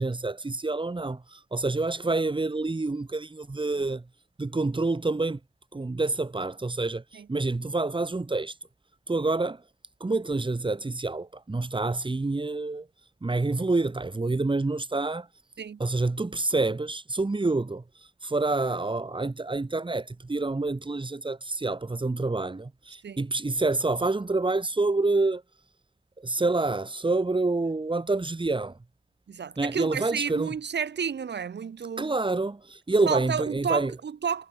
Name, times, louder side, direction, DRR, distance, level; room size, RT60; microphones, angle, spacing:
voice 1, 0.0-4.0 4.4-5.4 5.7-8.6 9.1-9.6 10.0-12.9 13.2-15.3 15.8-25.4 26.2-28.8 29.6-30.5 32.0-33.9, right 3 dB, 30° right, 5.7 m, -27 dB
voice 2, 29.3-32.1 33.1-34.5, right 7 dB, 80° right, 7.4 m, -31 dB
wide cardioid pair, 95°, 17 cm